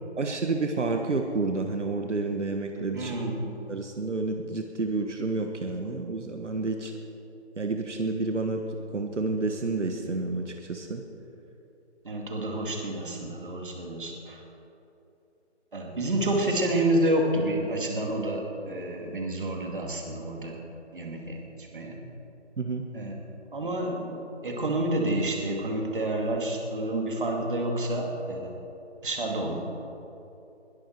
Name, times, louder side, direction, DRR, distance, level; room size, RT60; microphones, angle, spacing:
voice 1, 0.2-3.1 3.7-6.9 7.6-8.6 8.9-11.0 22.6-22.9, right 3 dB, 80° right, 4 dB, 1.4 m, -29 dB
voice 2, 2.9-3.6 12.0-14.4 15.7-20.6 20.9-21.9 22.9-23.1 23.5-28.5 29.0-29.6, right 1 dB, 45° right, 1 dB, 2.5 m, -29 dB
21.5 x 11.5 x 4.6 m, 3.0 s
figure-of-eight pair, 170°, 35 cm